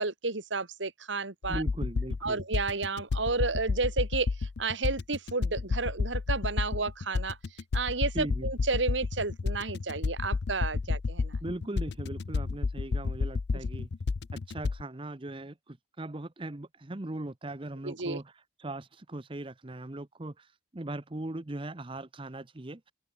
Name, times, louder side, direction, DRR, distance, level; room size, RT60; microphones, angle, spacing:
voice 1, 0.0-1.6 2.2-7.4 7.7-11.3 13.5-13.6 17.8-18.2, right 3 dB, 75° right, 2.0 m, -32 dB
sound 1, 1.4-14.8, left 4 dB, 60° left, 0.5 m, -31 dB
voice 2, 1.5-2.4 8.1-8.5 11.4-13.9 14.3-18.2 18.6-20.5 20.7-22.9, right 1 dB, 25° right, 0.8 m, -39 dB
open air
head